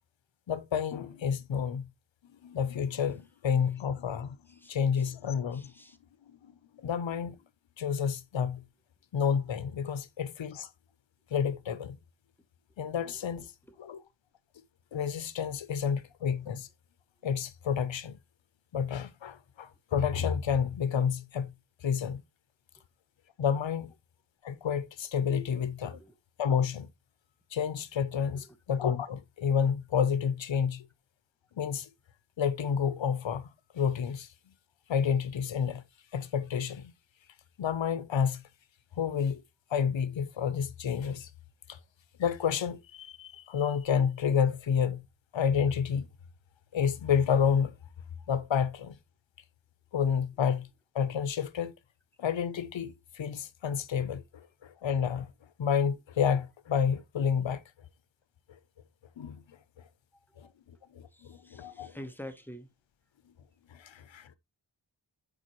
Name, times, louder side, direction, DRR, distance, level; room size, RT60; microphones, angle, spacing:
voice 1, 0.5-1.9 2.4-4.4 4.7-5.7 6.3-6.5 6.8-7.4 7.8-8.6 9.1-10.7 11.3-12.0 12.8-13.5 13.8-14.0 14.9-16.7 17.2-18.2 18.7-21.5 21.8-22.2 23.4-23.9 24.4-26.0 26.4-26.9 27.5-30.9 31.6-31.9 32.4-33.5 33.7-34.3 34.9-35.8 36.1-36.9 37.6-38.4 39.0-39.4 39.7-41.3 41.7-41.8 42.2-45.0 45.3-46.1 46.7-47.7 48.3-49.0 49.9-50.7 50.9-51.7 52.2-55.3 55.6-57.6 59.2-59.4 60.4-60.5 60.9-61.9 63.7-64.3, left 7 dB, 80° left, 0.8 m, -30 dB
voice 2, 5.5-6.0 13.7-13.8 25.9-26.1 28.3-28.6 60.4-60.5 61.1-62.7, equal, 5° left, 0.8 m, -47 dB
7.1 x 4.5 x 3.0 m
wide cardioid pair, 90°, 45 cm